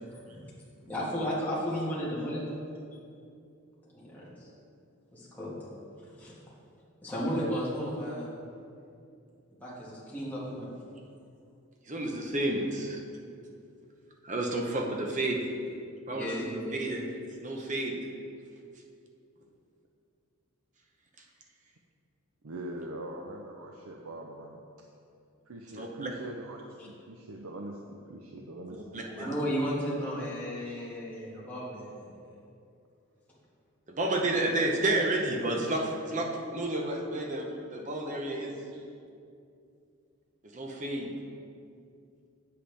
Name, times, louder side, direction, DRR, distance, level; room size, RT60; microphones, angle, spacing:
voice 1, 0.9-2.4 3.9-4.5 5.1-5.5 6.2-6.4 7.0-8.3 9.6-10.7 16.1-16.8 29.2-32.1, equal, 5° left, -8 dB, 1.9 m, -34 dB
voice 2, 11.9-13.0 14.2-15.4 16.1-17.0 17.4-17.9 25.7-26.1 28.9-29.3 33.9-36.3 36.5-38.6 40.5-41.1, right 2 dB, 35° right, 1 dB, 0.9 m, -31 dB
voice 3, 22.4-24.6 25.5-29.0 30.6-30.8 34.8-35.0 35.5-35.6 38.7-38.8, right 1 dB, 75° right, 0 dB, 0.6 m, -43 dB
8.4 x 7.7 x 3.4 m, 2.5 s
head